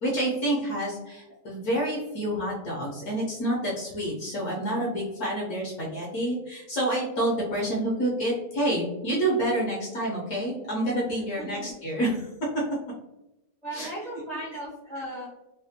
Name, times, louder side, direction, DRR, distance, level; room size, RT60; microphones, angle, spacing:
voice 1, 0.0-12.2 13.7-13.9, right 1 dB, 70° left, -4 dB, 1.2 m, -28 dB
voice 2, 11.4-11.7 13.6-15.3, right 1 dB, 35° right, -7 dB, 0.7 m, -36 dB
3.3 x 2.2 x 2.6 m, 0.93 s
omnidirectional pair, 1.7 m